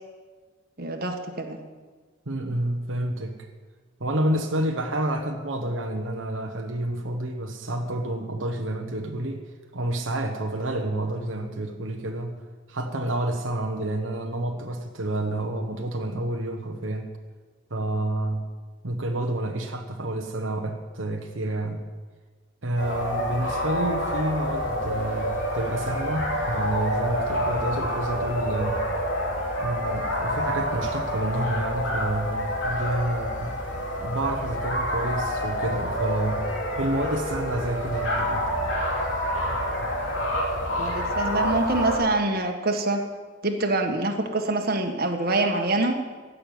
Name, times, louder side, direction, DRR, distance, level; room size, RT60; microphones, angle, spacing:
voice 1, 0.8-1.6 40.8-43.0 43.4-45.9, right 2 dB, 50° right, 4 dB, 1.6 m, -25 dB
voice 2, 2.3-3.4 4.0-9.4 9.7-12.4 12.7-17.1 17.7-18.5 18.8-21.9 22.6-28.8 29.6-33.6 34.0-36.5 36.8-38.5, right 1 dB, 80° right, 3 dB, 1.2 m, -29 dB
sound 1, 22.8-42.0, equal, 70° left, 3.4 m, -28 dB
16.0 x 6.8 x 9.3 m, 1.4 s
head